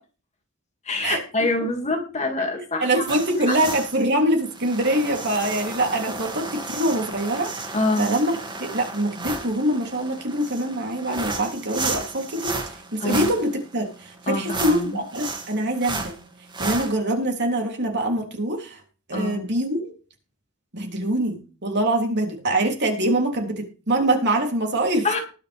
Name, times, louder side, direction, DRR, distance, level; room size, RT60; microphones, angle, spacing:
voice 1, 0.8-3.6 7.7-8.1 13.0-13.3 14.3-15.0 19.1-19.4 25.0-25.2, left 2 dB, 30° left, 3 dB, 2.7 m, -26 dB
voice 2, 2.8-8.3 8.7-12.6 12.9-16.1 16.6-18.8 19.1-19.9 20.7-25.1, right 1 dB, 55° right, 2 dB, 3.4 m, -24 dB
sound 1, 3.1-16.9, right 3 dB, 20° right, 2.5 m, -33 dB
20.0 x 6.8 x 3.6 m, 0.35 s
head